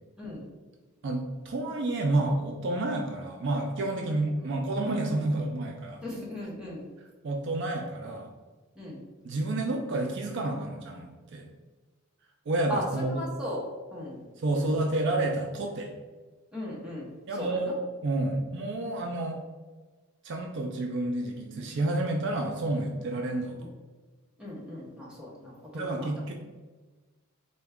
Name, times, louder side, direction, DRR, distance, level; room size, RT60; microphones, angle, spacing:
voice 1, 1.0-6.0 7.2-8.3 9.2-11.5 12.5-13.2 14.4-15.9 17.3-17.7 18.0-19.4 20.2-23.6 25.7-26.3, right 2 dB, 55° right, 2 dB, 0.4 m, -29 dB
voice 2, 6.0-6.8 8.8-9.0 12.7-14.2 14.6-14.7 16.5-17.1 17.4-17.8 23.5-23.7 24.4-26.2, equal, 5° right, -5 dB, 0.8 m, -37 dB
3.8 x 2.2 x 3.5 m, 1.3 s
head